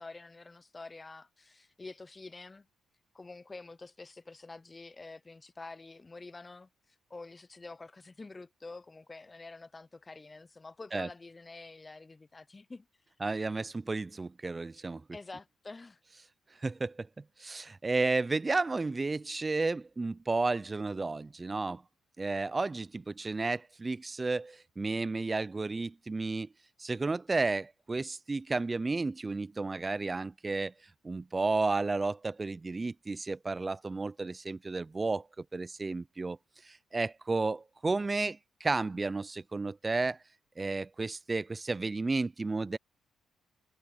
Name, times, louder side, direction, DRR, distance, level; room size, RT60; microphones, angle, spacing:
voice 1, 0.0-2.7 3.1-12.9 15.1-16.0, left 3 dB, 25° left, 0.7 m, -48 dB
voice 2, 13.2-15.0 16.6-17.1 17.4-21.8 22.2-26.5 26.8-30.7 31.0-36.4 36.6-40.2 40.6-42.8, right 3 dB, 25° right, 0.4 m, -32 dB
cardioid pair, 90°, 0 cm